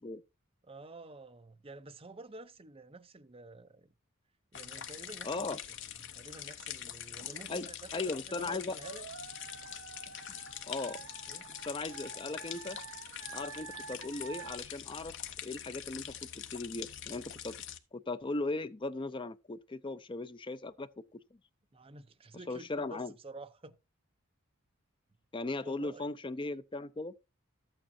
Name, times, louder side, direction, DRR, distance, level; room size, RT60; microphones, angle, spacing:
voice 1, 0.6-3.9 4.5-5.6 6.0-9.1 11.3-11.5 21.7-23.8 25.6-26.1, right 2 dB, 25° right, 0.7 m, -50 dB
sound 1, 4.5-17.8, left 10 dB, 55° left, 0.9 m, -44 dB
voice 2, 5.2-5.6 7.5-8.8 10.6-11.0 11.6-12.8 13.3-15.1 15.4-17.6 17.9-21.2 22.5-23.1 25.3-27.1, left 2 dB, 25° left, 0.5 m, -38 dB
sound 2, 7.0-8.4 8.8-8.9 10.1-11.3 13.1-13.5, right 2 dB, 45° right, 3.2 m, -62 dB
sound 3, 8.8-14.6, right 5 dB, 85° right, 1.7 m, -48 dB
13.0 x 8.8 x 2.7 m
head